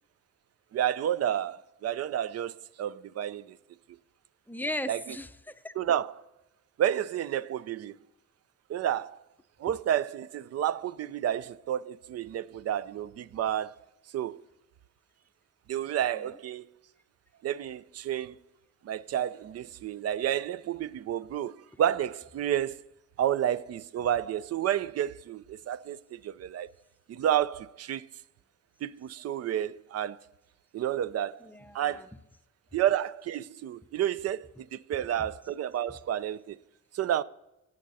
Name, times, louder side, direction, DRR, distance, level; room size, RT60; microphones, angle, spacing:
voice 1, 0.7-3.6 4.9-5.0 5.8-6.2 6.8-8.0 8.7-9.2 9.6-13.7 14.1-14.4 15.7-16.6 17.4-18.4 18.8-22.8 23.2-26.7 27.1-28.0 28.8-30.2 30.7-31.4 31.7-32.1 32.7-36.6 36.9-37.2, right 10 dB, 55° right, 0.5 m, -30 dB
voice 2, 4.5-5.7 16.1-16.4 31.4-32.1, left 1 dB, 5° left, 0.6 m, -37 dB
17.0 x 6.5 x 4.1 m
cardioid pair, 90°, 30 cm